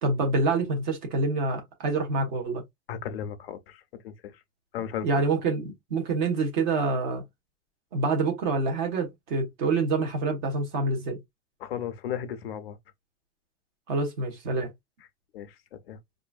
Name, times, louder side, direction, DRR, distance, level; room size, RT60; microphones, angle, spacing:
voice 1, 0.0-2.6 5.0-7.2 7.9-11.2 13.9-14.7, right 3 dB, 30° right, 1.1 m, -26 dB
voice 2, 2.9-4.3 4.7-5.2 11.6-12.8 15.3-15.5 15.9-16.0, left 9 dB, 45° left, 0.5 m, -35 dB
4.7 x 2.6 x 2.3 m
supercardioid pair, 170°, 45 cm